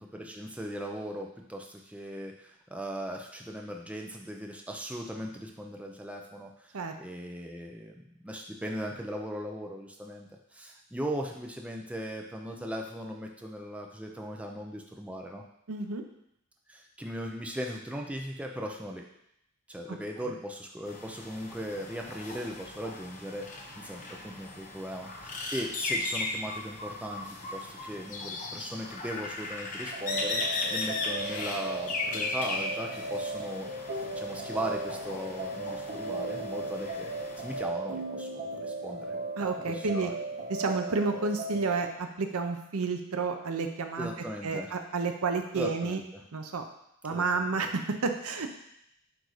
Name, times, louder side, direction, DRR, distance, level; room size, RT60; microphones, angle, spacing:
voice 1, 0.0-15.4 16.7-19.0 19.7-39.1 39.7-40.1 44.0-44.8 45.5-46.2 47.1-47.5, equal, 5° right, 1 dB, 0.5 m, -38 dB
voice 2, 15.7-16.0 19.9-20.0 39.4-40.1 40.5-44.1 44.4-46.0 46.3-46.6 47.0-48.6, right 4 dB, 80° right, 5 dB, 0.7 m, -30 dB
sound 1, 20.9-37.6, left 2 dB, 35° left, 0.9 m, -37 dB
sound 2, 29.9-41.8, right 1 dB, 45° right, 0.9 m, -36 dB
8.0 x 2.7 x 4.8 m, 0.78 s
head